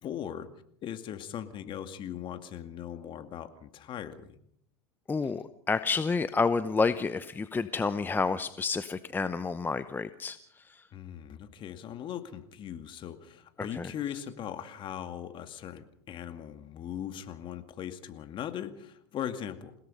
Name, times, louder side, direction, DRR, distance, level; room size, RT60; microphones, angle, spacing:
voice 1, 0.0-0.5 0.8-4.4 5.2-5.3 10.9-19.7, left 10 dB, 40° left, 9 dB, 2.2 m, -39 dB
voice 2, 5.1-10.9 13.7-13.9, left 4 dB, 15° left, 12 dB, 0.8 m, -30 dB
28.5 x 17.5 x 5.5 m, 0.70 s
hypercardioid pair, 100°, 13 cm